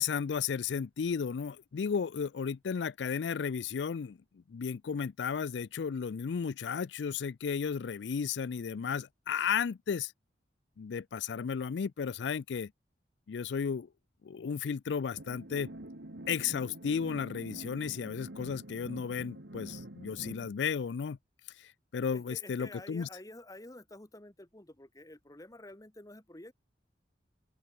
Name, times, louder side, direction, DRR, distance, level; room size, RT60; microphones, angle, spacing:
voice 1, 0.0-4.2 4.5-10.1 10.8-12.7 13.3-13.9 14.2-15.7 16.3-21.2 21.6-23.1, left 6 dB, 80° left, 0.4 m, -34 dB
sound 1, 15.2-20.5, right 1 dB, 80° right, 2.7 m, -46 dB
voice 2, 22.1-26.5, left 1 dB, 20° left, 1.5 m, -50 dB
open air
head